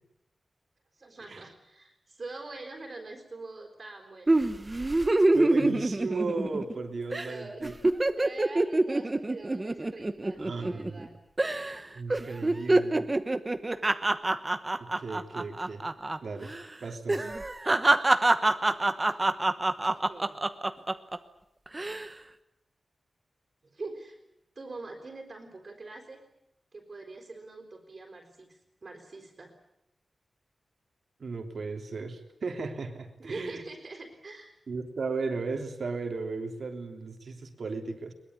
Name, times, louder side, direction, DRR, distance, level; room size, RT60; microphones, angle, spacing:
voice 1, 1.0-4.4 7.3-7.7 8.2-11.1 19.9-20.3 23.6-24.2 24.6-26.2 26.7-29.5 33.2-34.5, right 3 dB, 35° right, 2 dB, 4.1 m, -44 dB
sound 1, 4.3-6.8 7.1-7.3 7.6-11.1 11.4-11.8 12.1-16.2 16.4-16.6 17.1-21.2 21.7-22.1, right 2 dB, 20° right, 1.1 m, -26 dB
voice 2, 5.3-7.7 10.4-11.0 11.9-13.0 14.8-15.8 16.2-16.5 16.8-17.2 31.2-33.6 34.7-38.1, right 4 dB, 55° right, 5 dB, 3.2 m, -35 dB
22.5 x 21.5 x 9.6 m, 0.83 s
wide cardioid pair, 180°, 0 cm